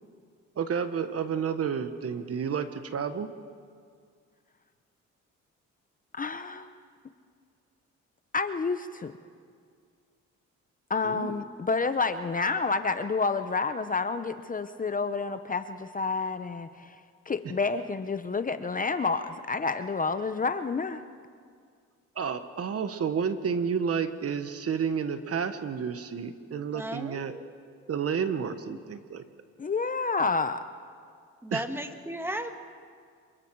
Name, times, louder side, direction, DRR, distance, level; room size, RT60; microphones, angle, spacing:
voice 1, 0.6-3.3 11.0-11.3 22.1-27.3 27.9-29.2 31.5-31.6, right 7 dB, 50° right, 10 dB, 1.3 m, -30 dB
voice 2, 6.1-6.8 8.3-9.1 10.9-17.0 17.3-21.0 29.6-30.6, left 4 dB, 25° left, 10 dB, 0.8 m, -29 dB
voice 3, 26.7-27.5 27.8-28.2 28.7-28.8 31.4-32.6, right 1 dB, 10° right, 6 dB, 1.7 m, -36 dB
27.0 x 23.5 x 4.7 m, 2.1 s
cardioid pair, 90°, 30 cm